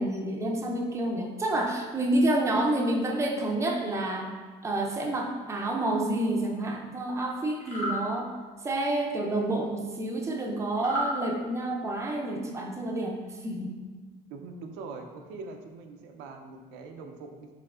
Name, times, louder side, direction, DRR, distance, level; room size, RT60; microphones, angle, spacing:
voice 1, 0.0-4.4 4.6-8.3 8.6-13.7, right 1 dB, 15° right, 0 dB, 0.5 m, -29 dB
sound 1, 7.6-8.0 10.8-11.1, equal, 80° left, 1.4 m, -31 dB
voice 2, 14.3-17.5, right 4 dB, 90° right, 3 dB, 0.5 m, -42 dB
4.8 x 2.8 x 2.3 m, 1.4 s
cardioid pair, 110°, 18 cm